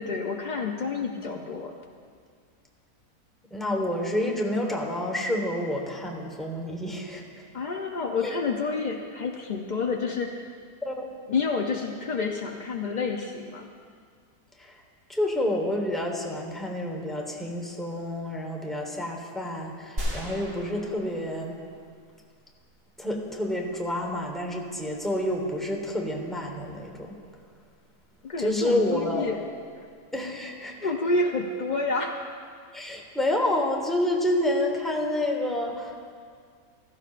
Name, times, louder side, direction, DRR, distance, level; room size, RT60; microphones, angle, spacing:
voice 1, 0.0-1.7 7.5-10.5 11.3-13.7 28.2-29.4 29.8-29.9 30.8-32.3, left 4 dB, 85° left, 2 dB, 0.4 m, -29 dB
voice 2, 3.5-7.2 8.2-8.4 10.8-11.1 14.6-14.7 15.1-21.6 23.0-27.1 28.4-29.3 30.1-30.9 32.7-36.1, left 1 dB, ahead, 0 dB, 1.0 m, -29 dB
sound 1, 20.0-21.9 22.2-22.3, equal, 50° right, 2.0 m, -35 dB
15.5 x 14.0 x 2.5 m, 2.1 s
omnidirectional pair, 1.6 m